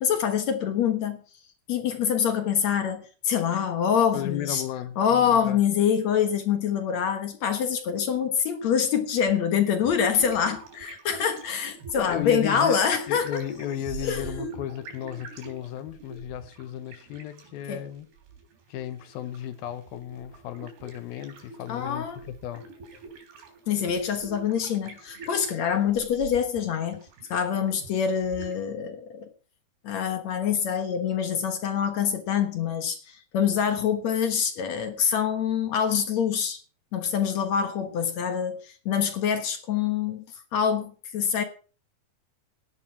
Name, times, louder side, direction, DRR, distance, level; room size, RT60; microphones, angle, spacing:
voice 1, 0.0-1.2 1.7-4.6 5.0-13.4 14.0-14.5 17.7-17.9 21.7-22.2 23.7-27.0 27.3-29.3 29.8-36.6 36.9-40.3 40.5-41.4, left 7 dB, 60° left, 2.1 m, -25 dB
voice 2, 4.1-5.6 12.0-12.8 13.1-18.1 18.7-22.7, left 11 dB, 75° left, 2.6 m, -34 dB
sound 1, 9.6-28.7, right 4 dB, 90° right, 5.6 m, -45 dB
16.5 x 11.0 x 4.6 m
omnidirectional pair, 4.5 m